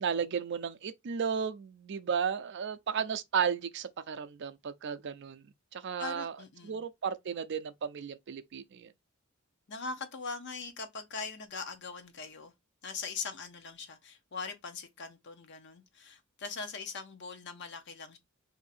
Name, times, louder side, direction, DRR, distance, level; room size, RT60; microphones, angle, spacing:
voice 1, 0.0-5.4 5.7-6.3 6.6-8.9, right 7 dB, 55° right, 0.4 m, -34 dB
voice 2, 6.0-6.9 9.7-12.5 12.8-18.2, left 4 dB, 55° left, 0.7 m, -41 dB
2.7 x 2.6 x 4.1 m
head